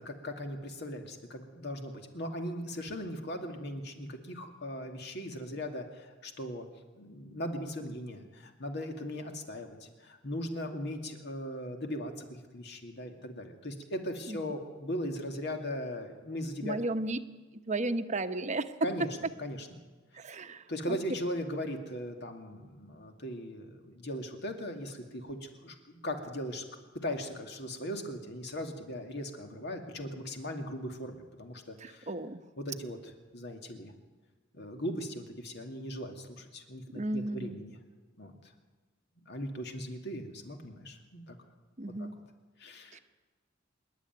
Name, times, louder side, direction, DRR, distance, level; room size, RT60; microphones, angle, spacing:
voice 1, 0.0-6.7 7.0-16.8 18.8-19.1 19.4-19.7 20.5-26.6 27.0-32.1 32.6-33.9 34.5-37.8 38.2-38.3 39.3-41.4 41.9-42.1 42.6-43.0, equal, 60° left, 4 dB, 2.4 m, -39 dB
voice 2, 16.6-17.2 17.7-18.7 20.1-21.0 31.8-32.4 36.9-37.6 41.8-42.2 42.9-43.0, right 2 dB, 35° right, 9 dB, 0.9 m, -34 dB
25.5 x 11.5 x 9.4 m, 1.3 s
head